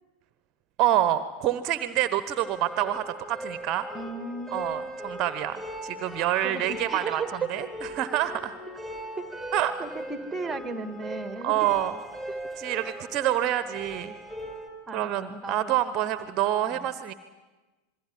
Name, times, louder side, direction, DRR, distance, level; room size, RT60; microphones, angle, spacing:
voice 1, 0.8-3.9 4.5-7.2 7.5-7.7 7.9-8.5 9.5-9.8 11.4-12.0 12.6-14.1 14.9-17.1, right 12 dB, 35° right, 13 dB, 1.0 m, -27 dB
sound 1, 2.4-14.7, right 1 dB, 10° left, 4.8 m, -39 dB
voice 2, 3.9-4.9 6.4-7.3 7.6-7.7 8.1-8.2 9.2-9.3 9.8-11.7 12.3-12.4 12.8-12.9 14.9-15.7 16.7-16.8, right 3 dB, 10° right, 12 dB, 1.6 m, -36 dB
27.0 x 21.5 x 8.4 m, 1.2 s
figure-of-eight pair, 90°, 0 cm